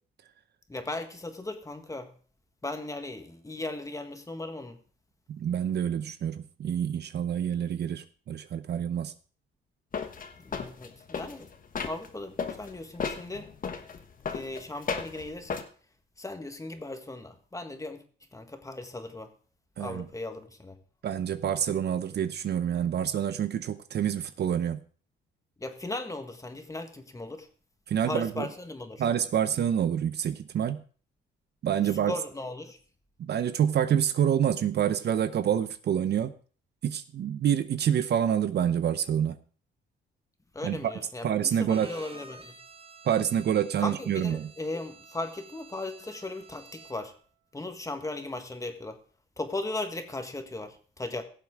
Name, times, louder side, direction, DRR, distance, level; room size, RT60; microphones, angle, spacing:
voice 1, 0.7-2.1 2.6-4.8 10.4-11.5 11.8-13.5 14.3-15.6 16.2-18.0 18.3-19.3 19.8-20.8 25.6-27.5 28.0-29.1 31.8-32.8 40.5-42.6 43.8-47.1 47.5-49.0 49.4-51.2, left 2 dB, 15° left, 6 dB, 1.6 m, -37 dB
voice 2, 5.3-9.1 19.8-20.1 21.0-24.8 27.9-28.5 29.0-30.8 31.6-32.1 33.2-36.3 36.8-39.4 40.6-40.9 41.2-41.9 43.1-44.5, right 9 dB, 55° right, 12 dB, 0.7 m, -27 dB
sound 1, 9.9-12.1 12.4-15.6, left 6 dB, 45° left, 1.3 m, -35 dB
Bowed string instrument, 41.6-47.2, right 4 dB, 30° right, 1.2 m, -51 dB
17.0 x 7.3 x 3.6 m, 0.41 s
cardioid pair, 90°, 20 cm